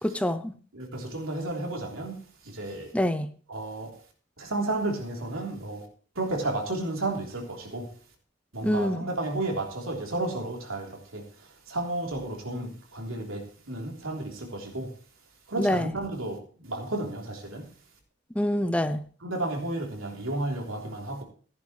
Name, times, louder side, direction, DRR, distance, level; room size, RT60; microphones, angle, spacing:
voice 1, 0.0-0.5 2.9-3.3 8.6-9.1 15.6-15.8 18.4-19.0, left 1 dB, 5° left, 0.5 m, -25 dB
voice 2, 0.7-2.9 3.5-3.9 4.4-5.9 6.1-7.9 8.5-14.9 15.5-17.8 19.2-21.2, right 2 dB, 85° right, 3.4 m, -32 dB
15.0 x 10.5 x 3.2 m
head